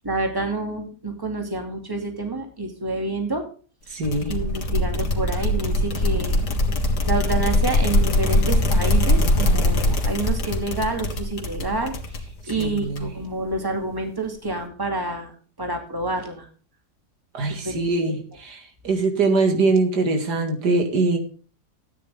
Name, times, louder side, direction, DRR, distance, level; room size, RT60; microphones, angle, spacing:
voice 1, 0.0-3.4 4.3-6.4 7.1-16.5 17.6-18.2, right 2 dB, 15° right, 3 dB, 2.5 m, -28 dB
voice 2, 3.9-4.3 12.6-13.1 17.3-21.2, right 3 dB, 85° right, 4 dB, 2.6 m, -22 dB
sound 1, 4.0-13.3, left 1 dB, 90° left, 2.3 m, -22 dB
13.5 x 9.5 x 3.6 m, 0.39 s
omnidirectional pair, 1.7 m